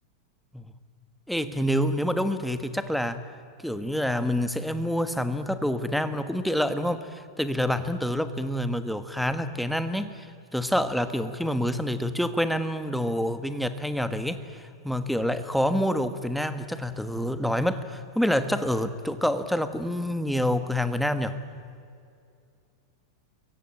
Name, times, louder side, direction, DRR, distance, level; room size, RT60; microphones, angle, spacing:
voice 1, 1.3-3.2 3.6-10.3 10.5-21.4, equal, ahead, 10 dB, 1.3 m, -27 dB
28.5 x 23.0 x 8.9 m, 2.4 s
supercardioid pair, 155°, 2 cm